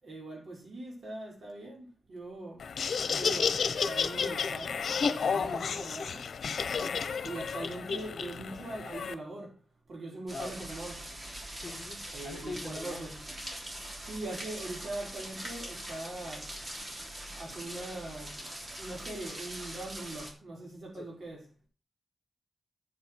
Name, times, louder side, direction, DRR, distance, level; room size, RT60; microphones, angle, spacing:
voice 1, 0.0-2.7 3.1-4.8 5.1-6.3 7.2-9.6 9.9-11.0 12.1-13.2 14.0-16.5 17.3-18.5 18.8-21.5, right 2 dB, 65° right, 5.5 m, -41 dB
Laughter, 2.6-9.1, left 6 dB, 85° left, 1.0 m, -31 dB
voice 2, 5.4-5.8 6.8-7.1 10.3-10.7 11.6-13.1 20.9-21.1, left 3 dB, 40° left, 2.2 m, -44 dB
sound 1, 10.3-20.3, right 1 dB, 35° right, 3.4 m, -42 dB
8.6 x 8.3 x 4.7 m
wide cardioid pair, 140°, 0 cm